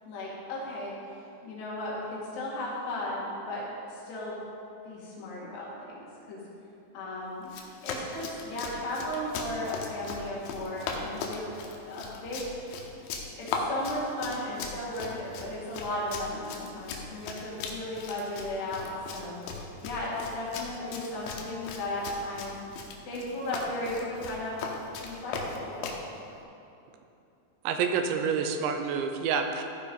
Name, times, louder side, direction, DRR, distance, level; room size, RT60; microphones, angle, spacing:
voice 1, 0.1-0.9 1.4-4.4 4.8-6.4 6.9-7.5 7.8-11.5 11.9-12.5 13.4-22.6 23.1-25.9, left 1 dB, 70° left, -6 dB, 3.9 m, -35 dB
Run, 7.4-26.1, left 4 dB, 90° left, 3.1 m, -38 dB
voice 2, 27.6-29.6, right 6 dB, 85° right, 6 dB, 2.9 m, -28 dB
14.5 x 4.9 x 5.3 m, 2.8 s
omnidirectional pair, 5.2 m